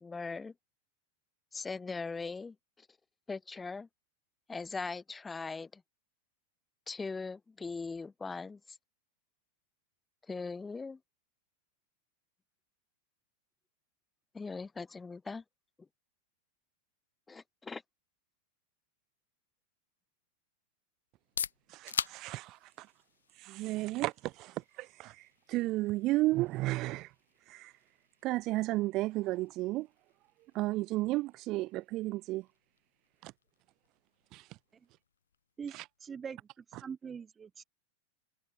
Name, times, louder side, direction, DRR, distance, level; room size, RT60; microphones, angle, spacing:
voice 1, 0.0-0.5 1.5-2.9 3.3-3.9 4.5-5.8 6.9-8.6 10.3-11.0 14.3-15.4 17.3-17.8, left 4 dB, 15° left, 2.0 m, -40 dB
sound 1, 21.1-36.7, left 7 dB, 85° left, 3.1 m, -47 dB
voice 2, 21.7-22.9 23.4-27.1 27.5-27.7 28.2-29.9 30.5-32.4 33.2-33.3 34.3-34.5 35.7-35.8, right 19 dB, 45° right, 0.6 m, -33 dB
voice 3, 36.0-37.6, right 6 dB, 25° right, 2.4 m, -43 dB
hypercardioid pair, 95°, 0 cm